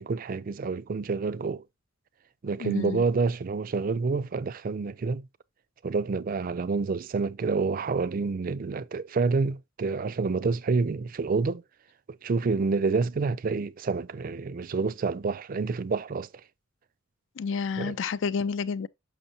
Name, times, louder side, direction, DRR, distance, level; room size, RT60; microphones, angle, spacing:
voice 1, 0.0-1.6 2.4-5.3 5.8-11.6 12.1-16.3 17.8-18.0, right 4 dB, 45° right, 0.4 m, -28 dB
voice 2, 2.6-3.0 17.4-18.9, left 5 dB, 65° left, 0.4 m, -30 dB
6.5 x 6.1 x 2.7 m
head